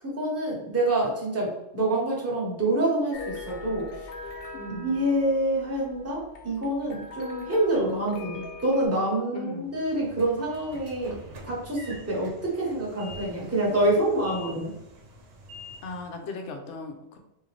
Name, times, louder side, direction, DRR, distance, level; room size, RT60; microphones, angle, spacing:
voice 1, 0.0-3.9 4.7-11.2 11.4-14.7, right 1 dB, 15° right, -5 dB, 1.0 m, -26 dB
sound 1, 3.1-8.9, left 4 dB, 60° left, 0.7 m, -41 dB
voice 2, 4.5-5.1 9.3-9.7 15.8-17.2, left 3 dB, 80° left, 4 dB, 1.0 m, -38 dB
Train / Sliding door, 9.7-16.2, equal, 80° right, 1.1 m, -45 dB
3.7 x 2.8 x 3.2 m, 0.88 s
omnidirectional pair, 1.2 m